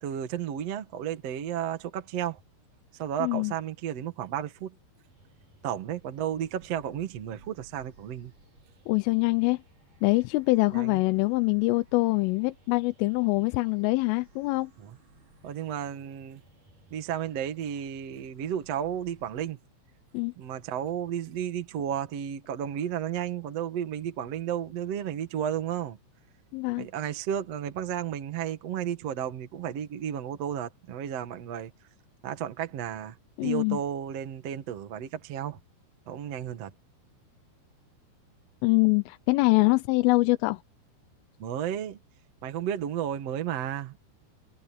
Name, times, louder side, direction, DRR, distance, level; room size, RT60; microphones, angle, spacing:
voice 1, 0.0-2.4 3.0-4.7 5.6-8.3 10.7-11.0 14.8-14.9 15.4-16.4 16.9-19.6 20.4-26.0 26.8-31.7 32.2-33.2 33.4-35.6 36.1-36.7 41.4-42.0 42.4-44.0, right 9 dB, 70° right, 1.5 m, -33 dB
voice 2, 3.2-3.5 8.9-9.6 10.0-14.7 20.1-20.3 26.5-26.9 33.4-33.8 38.6-40.6, left 24 dB, 85° left, 3.2 m, -24 dB
sound 1, 5.1-19.5, right 3 dB, 40° right, 5.9 m, -59 dB
omnidirectional pair, 5.8 m